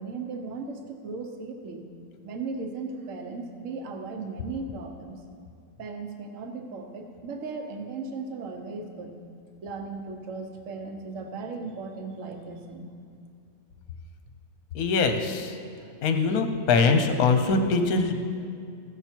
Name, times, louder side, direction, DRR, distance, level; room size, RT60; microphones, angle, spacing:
voice 1, 0.0-1.9 2.2-5.2 5.8-9.2 9.6-13.0, right 4 dB, 50° right, 4 dB, 1.1 m, -37 dB
voice 2, 14.7-15.5 16.0-18.1, left 4 dB, 60° left, 6 dB, 1.2 m, -22 dB
15.0 x 7.0 x 4.5 m, 2.3 s
omnidirectional pair, 2.0 m